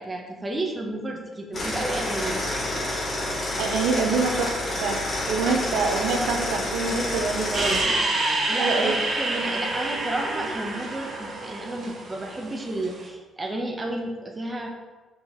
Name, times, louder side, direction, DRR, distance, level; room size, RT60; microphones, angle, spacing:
voice 1, 0.0-2.4 8.5-14.7, right 1 dB, 20° right, 1 dB, 1.3 m, -31 dB
sound 1, 1.5-7.8, left 1 dB, 30° left, 2.3 m, -28 dB
voice 2, 3.6-5.0 5.3-8.0 8.6-9.0, right 4 dB, 90° right, 3 dB, 0.7 m, -26 dB
sound 2, 7.5-12.9, right 2 dB, 50° right, 1.4 m, -27 dB
5.4 x 4.6 x 5.3 m, 1.3 s
cardioid pair, 90°, 0 cm